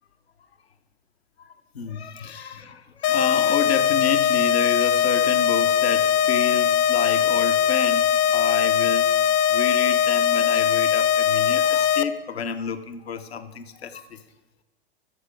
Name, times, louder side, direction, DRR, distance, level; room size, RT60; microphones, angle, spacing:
voice 1, 1.7-9.1 9.5-14.2, left 7 dB, 85° left, 10 dB, 0.9 m, -30 dB
sound 1, 3.0-12.0, left 9 dB, 45° left, 0.6 m, -20 dB
13.5 x 5.5 x 5.1 m, 1.1 s
hypercardioid pair, 100°, 31 cm